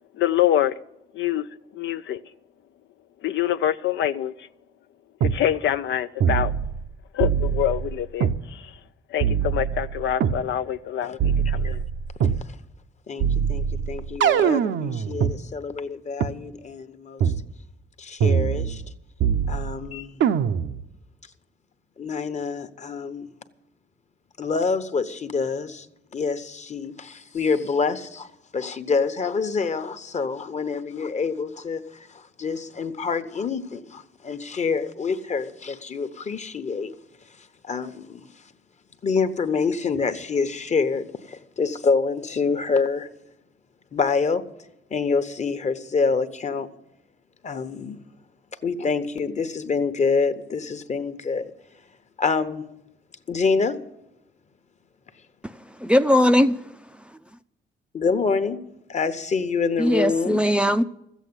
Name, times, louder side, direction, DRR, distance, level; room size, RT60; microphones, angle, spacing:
voice 1, 0.2-0.7 1.2-1.4 1.8-2.2 3.2-4.3 5.2-6.5 7.1-8.7 9.1-11.8, left 11 dB, 70° left, 0.5 m, -25 dB
sound 1, 5.2-5.4 6.2-6.9 7.2-8.4 9.2-10.4 11.2-12.4 13.2-15.4 16.2-16.3 17.2-17.4 18.2-18.9 19.2-19.8 20.2-20.8, right 7 dB, 70° right, 0.7 m, -23 dB
voice 2, 13.1-17.3 18.0-18.8 19.5-20.2 22.0-23.3 24.4-25.9 26.1-28.3 28.5-31.8 32.1-36.9 37.6-38.3 39.0-43.1 43.9-44.4 44.9-46.7 47.4-48.0 48.6-51.5 52.2-52.6 53.3-53.8 57.9-58.6 58.9-60.4, left 4 dB, 35° left, 1.0 m, -26 dB
voice 3, 55.8-56.6 59.8-60.8, equal, 5° right, 0.5 m, -19 dB
14.0 x 8.3 x 9.8 m
cardioid pair, 90°, 20 cm